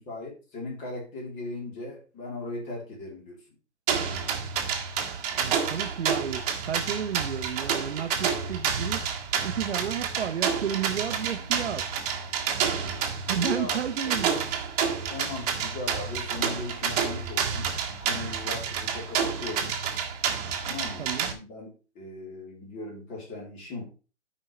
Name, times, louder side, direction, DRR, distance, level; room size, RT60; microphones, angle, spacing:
voice 1, 0.0-3.4 11.1-11.5 13.4-13.8 14.0-14.3 15.1-19.7 20.6-23.8, left 2 dB, 20° left, 3.4 m, -38 dB
sound 1, 3.9-21.3, right 7 dB, 35° right, 1.7 m, -29 dB
voice 2, 5.3-9.0 9.4-11.8 13.3-14.5 21.0-21.3, right 8 dB, 70° right, 1.0 m, -32 dB
13.0 x 5.5 x 3.2 m
hypercardioid pair, 155°, 35 cm